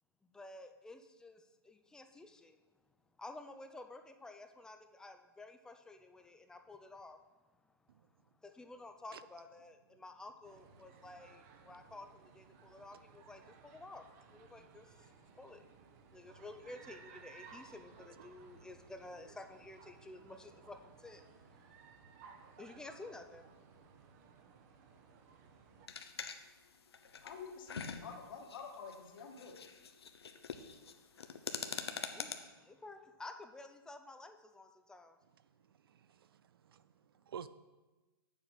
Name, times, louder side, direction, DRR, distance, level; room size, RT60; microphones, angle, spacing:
voice 1, 0.3-2.6 3.2-7.2 8.4-14.0 14.3-14.9 15.4-15.6 16.1-21.3 22.6-23.4 32.0-32.3 32.6-35.2, left 2 dB, 5° left, 7 dB, 0.5 m, -52 dB
sound 1, 10.4-25.9, right 6 dB, 40° right, 0.9 m, -59 dB
sound 2, 25.9-32.3, left 6 dB, 80° left, 0.9 m, -45 dB
voice 2, 27.2-29.6, left 5 dB, 55° left, 1 dB, 1.8 m, -49 dB
voice 3, 35.8-37.5, right 8 dB, 65° right, 14 dB, 0.5 m, -51 dB
8.3 x 7.2 x 4.0 m, 1.2 s
hypercardioid pair, 135°, 13 cm